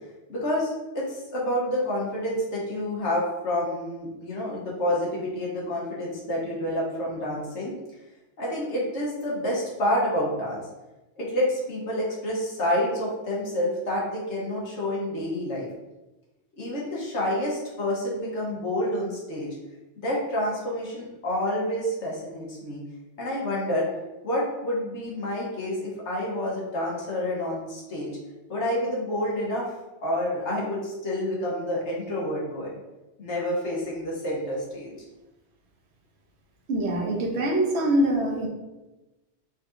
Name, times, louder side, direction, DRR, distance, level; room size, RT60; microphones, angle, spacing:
voice 1, 0.3-7.7 8.4-10.6 11.2-15.7 16.6-19.6 20.0-22.8 23.2-23.9 24.2-28.2 28.5-29.7 30.0-32.7 33.2-34.9, left 1 dB, 90° left, -5 dB, 1.5 m, -28 dB
voice 2, 36.7-38.5, right 1 dB, 75° right, 0 dB, 1.0 m, -24 dB
4.1 x 3.7 x 2.6 m, 1.1 s
omnidirectional pair, 1.2 m